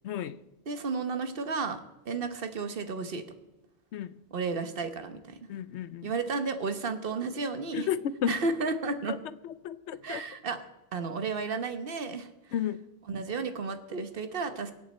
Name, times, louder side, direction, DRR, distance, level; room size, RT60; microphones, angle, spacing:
voice 1, 0.0-0.4 3.9-4.2 5.5-6.1 7.7-8.4 9.1-10.2 12.5-12.8, left 9 dB, 70° left, 0.9 m, -33 dB
voice 2, 0.7-3.2 4.3-5.5 6.0-7.9 8.3-9.2 10.0-10.6 10.9-12.3 13.1-14.7, right 4 dB, 50° right, 1.2 m, -32 dB
24.0 x 8.4 x 4.3 m
omnidirectional pair, 1.2 m